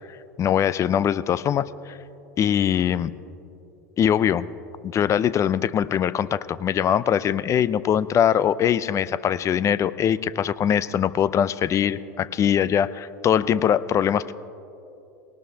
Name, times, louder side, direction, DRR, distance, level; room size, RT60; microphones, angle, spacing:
voice 1, 0.4-2.0 2.4-3.1 4.0-4.5 4.8-14.3, left 9 dB, 30° left, 17 dB, 0.5 m, -22 dB
20.0 x 19.0 x 2.8 m, 2.8 s
hypercardioid pair, 90°, 10 cm